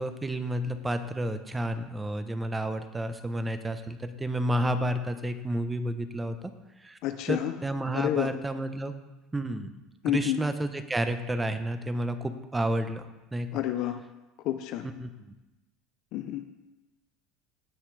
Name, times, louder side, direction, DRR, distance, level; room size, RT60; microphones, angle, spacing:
voice 1, 0.0-6.5 6.8-7.0 7.3-8.9 9.3-9.7 10.0-13.0 13.3-13.5 14.8-15.1, right 1 dB, 15° right, 9 dB, 0.9 m, -30 dB
voice 2, 7.0-7.5 7.9-8.3 10.0-10.4 13.5-14.0 14.4-14.9 16.1-16.4, left 13 dB, 65° left, 8 dB, 0.7 m, -29 dB
17.0 x 5.7 x 3.4 m, 1.0 s
supercardioid pair, 95°, 0 cm